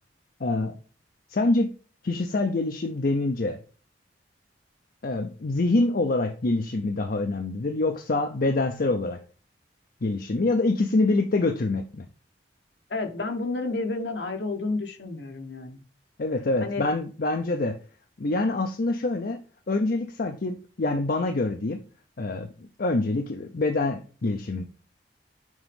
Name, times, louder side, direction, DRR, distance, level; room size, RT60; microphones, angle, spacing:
voice 1, 0.4-0.8 1.3-1.7 2.0-3.6 5.0-9.2 10.0-12.1 16.2-17.8 18.2-19.4 19.7-21.8 22.2-24.6, left 2 dB, 55° left, 5 dB, 0.6 m, -25 dB
voice 2, 12.9-15.8 16.6-16.8, left 3 dB, 70° left, 5 dB, 1.3 m, -30 dB
6.3 x 5.0 x 3.5 m, 0.38 s
head